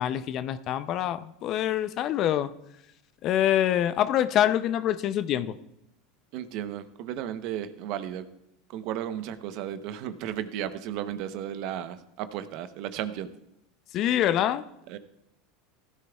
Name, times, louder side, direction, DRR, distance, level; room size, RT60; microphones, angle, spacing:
voice 1, 0.0-2.5 3.2-5.6 13.9-14.6, left 11 dB, 50° left, 14 dB, 0.6 m, -25 dB
voice 2, 6.3-8.3 8.7-13.3 14.9-15.0, right 10 dB, 60° right, 11 dB, 0.9 m, -34 dB
16.5 x 13.0 x 2.4 m, 0.81 s
supercardioid pair, 105°, 0 cm